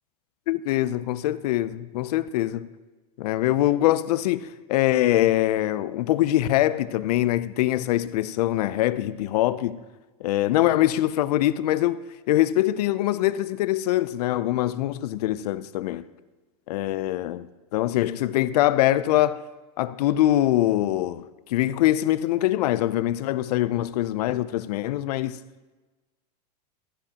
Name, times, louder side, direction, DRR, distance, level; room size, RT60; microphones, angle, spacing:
voice 1, 0.5-2.7 3.2-9.8 10.2-16.1 16.7-19.4 19.8-25.4, left 14 dB, 75° left, 0.5 m, -23 dB
13.5 x 9.7 x 2.9 m
supercardioid pair, 150°, 21 cm